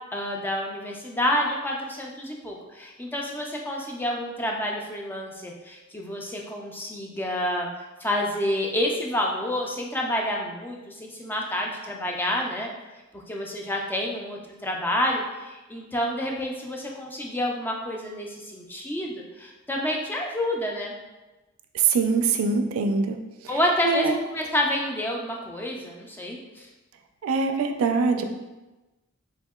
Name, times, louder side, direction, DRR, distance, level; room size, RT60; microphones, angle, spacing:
voice 1, 0.0-7.7 8.0-12.7 13.3-20.9 23.5-24.1 24.3-26.7, left 1 dB, 10° left, -1 dB, 0.3 m, -29 dB
voice 2, 21.7-23.2 23.4-23.6 23.8-24.1 27.2-28.2, right 4 dB, 90° right, 6 dB, 0.3 m, -23 dB
3.5 x 2.7 x 2.3 m, 1.1 s
head